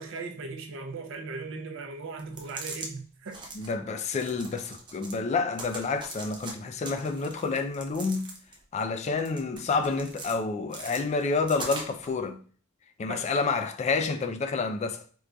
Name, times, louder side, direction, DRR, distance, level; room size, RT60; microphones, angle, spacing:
voice 1, 0.0-3.4 13.1-13.3, right 3 dB, 65° right, 0.6 m, -38 dB
sound 1, 2.2-2.9 3.3-3.7 4.1-5.2 5.5-6.5 6.8-8.6 9.0-10.4 10.7-12.1, right 3 dB, 20° right, 0.5 m, -41 dB
voice 2, 3.5-8.3 8.7-12.4 13.0-15.0, left 4 dB, 35° left, 0.3 m, -29 dB
4.5 x 2.5 x 2.2 m
head